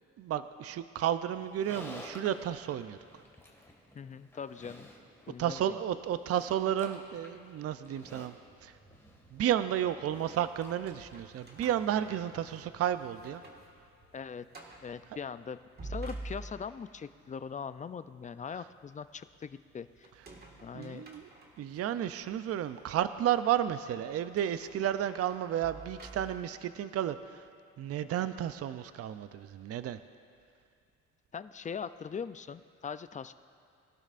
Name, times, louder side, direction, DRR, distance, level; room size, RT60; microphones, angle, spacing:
voice 1, 0.2-3.0 5.4-8.3 8.6-8.7 9.3-13.4 20.7-21.3 21.6-27.4 27.8-30.0, right 10 dB, 50° right, 12 dB, 0.5 m, -32 dB
Livestock farm animals working animals, 1.3-12.6, left 1 dB, 10° left, 1.9 m, -53 dB
voice 2, 4.0-4.9 5.3-5.8 14.1-14.5 14.8-20.1 20.6-21.0 28.2-28.3 31.3-33.3, left 6 dB, 25° left, 13 dB, 0.4 m, -41 dB
sound 1, 8.3-24.6, right 3 dB, 85° right, 3.0 m, -66 dB
sound 2, 10.6-12.7 13.1-13.7 14.0-14.1 14.5-14.9 15.5-16.9 20.0-21.8 22.5-22.6 24.4-26.6, right 2 dB, 30° right, 1.8 m, -47 dB
21.0 x 12.0 x 2.5 m, 2.3 s
cardioid pair, 90°, 30 cm